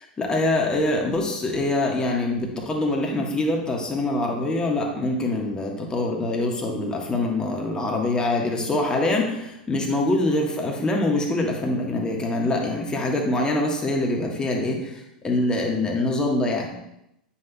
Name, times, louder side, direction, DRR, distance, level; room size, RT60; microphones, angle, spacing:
voice 1, 0.2-16.8, left 2 dB, 15° left, 0 dB, 1.5 m, -24 dB
9.4 x 5.8 x 2.4 m, 0.83 s
figure-of-eight pair, 90°, 5 cm